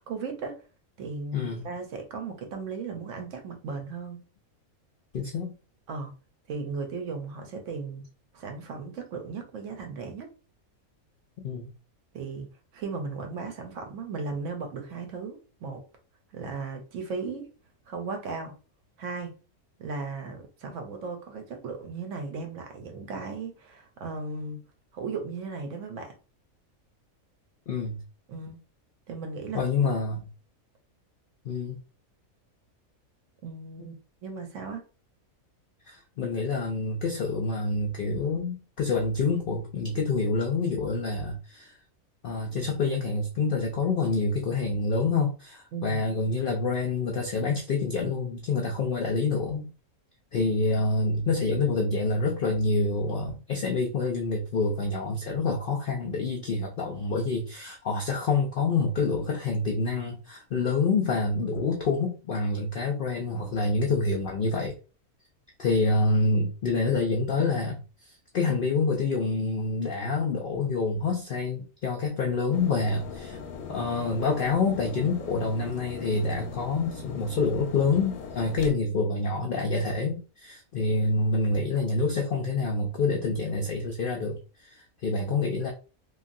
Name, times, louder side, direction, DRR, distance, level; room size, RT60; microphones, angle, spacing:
voice 1, 0.1-0.6 1.0-4.2 5.9-6.1 6.5-8.0 8.3-10.3 12.1-15.8 16.3-17.5 17.9-18.5 19.0-19.3 19.8-24.6 24.9-26.1 28.3-28.6 29.1-29.6 33.4-33.9 34.2-34.8 45.7-46.0, right 4 dB, 65° right, 0.9 m, -36 dB
voice 2, 1.3-1.6 5.1-5.5 11.4-11.7 27.7-28.0 29.5-30.3 31.4-31.8 35.8-41.8 42.2-49.7 50.3-64.8 65.6-73.4 73.7-85.7, left 3 dB, 70° left, 0.5 m, -27 dB
sound 1, 72.5-78.7, left 5 dB, 90° left, 1.0 m, -40 dB
3.1 x 2.4 x 2.5 m
omnidirectional pair, 1.5 m